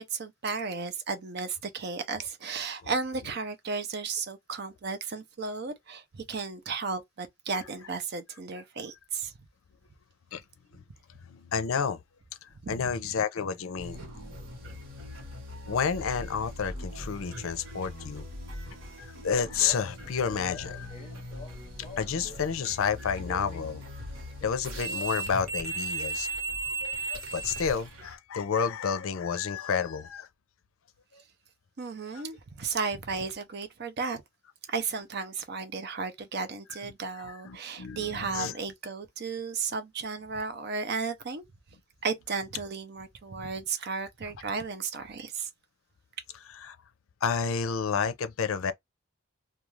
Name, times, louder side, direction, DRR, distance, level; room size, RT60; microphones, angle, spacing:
voice 1, 0.0-9.3 12.6-12.9 14.0-14.1 31.8-34.2 34.7-41.4 42.0-45.5, right 4 dB, 50° right, 0.6 m, -34 dB
voice 2, 11.2-12.0 12.4-14.0 15.7-18.2 19.0-21.2 22.0-23.8 24.4-26.3 26.8-30.3 32.1-32.2 36.8-36.9 37.2-38.5 46.6-46.8 47.2-48.7, left 6 dB, 80° left, 0.5 m, -30 dB
sound 1, 13.8-28.1, right 1 dB, 70° right, 1.2 m, -38 dB
Male speech man speaking, 19.3-22.5 22.8-26.2, left 4 dB, 30° left, 0.6 m, -48 dB
2.4 x 2.3 x 3.1 m
head